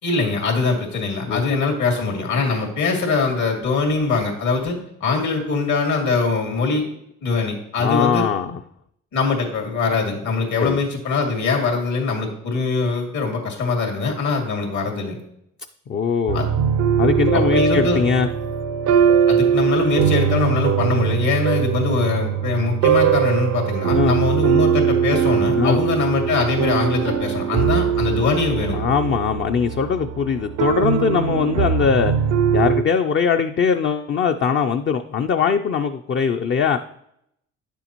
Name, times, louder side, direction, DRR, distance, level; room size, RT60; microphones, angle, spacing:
voice 1, 0.0-6.8 7.2-8.2 9.1-15.2 16.3-16.5 17.3-18.1 19.3-28.8, left 4 dB, 75° left, 1 dB, 2.4 m, -22 dB
voice 2, 7.8-8.6 10.6-10.8 15.9-16.5 17.0-18.3 23.9-24.1 25.6-25.8 28.7-32.1 32.5-36.8, left 6 dB, 40° left, 6 dB, 0.5 m, -21 dB
sound 1, 16.3-32.8, right 8 dB, 75° right, 0.6 m, -21 dB
9.9 x 6.9 x 3.0 m, 0.74 s
cardioid pair, 90°, 30 cm